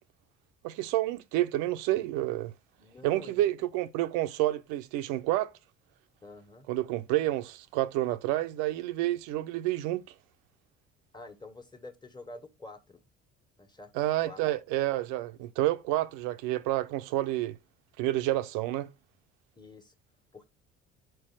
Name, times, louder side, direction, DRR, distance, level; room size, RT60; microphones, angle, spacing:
voice 1, 0.6-2.5 3.0-5.5 6.7-10.0 13.9-17.6 18.0-18.9, right 15 dB, 80° right, 0.7 m, -29 dB
voice 2, 2.8-3.5 6.2-6.7 11.1-13.0 13.6-14.4 19.5-19.9 20.3-20.5, left 2 dB, 15° left, 1.6 m, -48 dB
4.6 x 4.6 x 6.0 m
hypercardioid pair, 60°, 30 cm